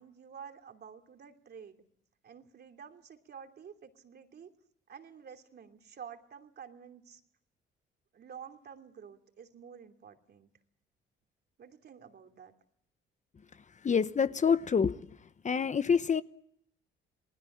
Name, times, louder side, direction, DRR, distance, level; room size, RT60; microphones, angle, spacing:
voice 1, 0.0-1.8 2.2-4.5 4.9-7.2 8.1-10.5 11.6-12.5, right 7 dB, 55° right, 2.9 m, -50 dB
voice 2, 13.8-15.0 15.4-16.2, left 6 dB, 35° left, 1.0 m, -26 dB
28.5 x 20.5 x 8.6 m
cardioid pair, 90°, 20 cm